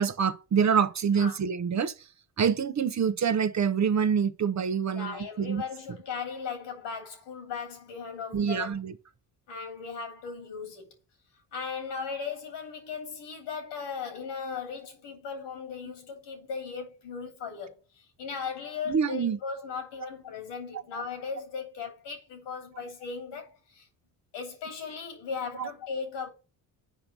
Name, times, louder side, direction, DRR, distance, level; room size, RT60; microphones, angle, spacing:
voice 1, 0.0-2.1 2.4-5.6 8.3-9.0 15.8-15.9 18.9-19.4 20.7-20.8 22.8-22.9 25.6-25.7, right 7 dB, 40° right, 0.9 m, -26 dB
voice 2, 4.9-8.7 9.5-11.0 11.5-23.9 24.3-26.3, left 5 dB, 85° left, 3.1 m, -37 dB
7.5 x 5.3 x 6.0 m
cardioid pair, 80°, 42 cm